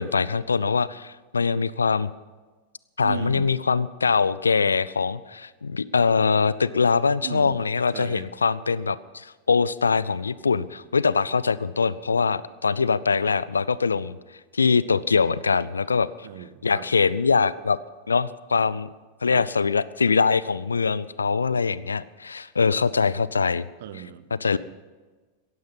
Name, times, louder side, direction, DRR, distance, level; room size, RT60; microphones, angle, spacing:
voice 1, 0.0-2.1 3.0-14.2 14.5-16.1 16.6-17.8 18.1-18.9 19.2-23.6 24.4-24.6, left 5 dB, 75° left, 19 dB, 0.5 m, -23 dB
voice 2, 3.0-3.5 7.2-7.6 7.9-8.3 16.2-16.9 19.3-19.4 23.8-24.6, right 10 dB, 55° right, 14 dB, 0.9 m, -37 dB
17.5 x 14.5 x 5.4 m, 1.3 s
figure-of-eight pair, 90°, 0 cm